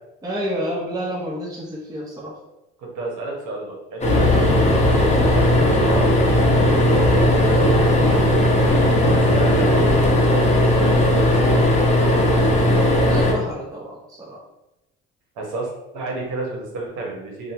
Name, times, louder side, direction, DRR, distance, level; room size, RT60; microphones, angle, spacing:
voice 1, 0.2-2.3 13.1-14.4, equal, 10° right, -4 dB, 0.7 m, -29 dB
voice 2, 2.8-6.3 7.1-8.5 8.9-12.0 15.4-17.5, right 2 dB, 75° right, -1 dB, 1.1 m, -31 dB
sound 1, 4.0-13.3, left 1 dB, 20° left, 0.7 m, -17 dB
sound 2, 4.1-10.3, left 2 dB, 85° left, 0.8 m, -26 dB
2.7 x 2.3 x 2.7 m, 0.94 s
supercardioid pair, 75°, 32 cm